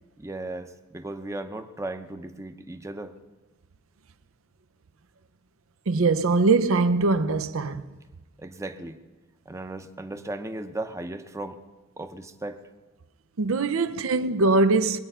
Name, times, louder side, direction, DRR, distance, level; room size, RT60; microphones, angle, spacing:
voice 1, 0.2-3.2 8.4-9.0 9.5-11.6 12.0-12.6, right 2 dB, 15° right, 0.7 m, -36 dB
voice 2, 5.9-7.8 13.4-15.0, right 3 dB, 75° right, 0.6 m, -22 dB
21.5 x 9.0 x 5.6 m
head